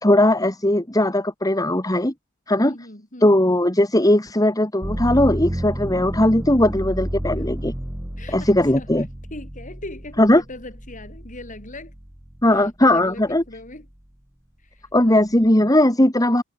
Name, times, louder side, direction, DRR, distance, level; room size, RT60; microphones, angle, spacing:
voice 1, 0.0-2.1 2.5-2.7 3.2-7.7 8.3-9.1 10.2-10.4 12.4-13.4 14.9-16.4, left 1 dB, 20° left, 2.7 m, -18 dB
voice 2, 2.6-3.4 8.2-11.9 12.5-13.9 14.6-15.3, left 2 dB, 40° left, 5.6 m, -40 dB
sound 1, 4.8-12.6 13.1-13.9, equal, 15° right, 1.7 m, -31 dB
head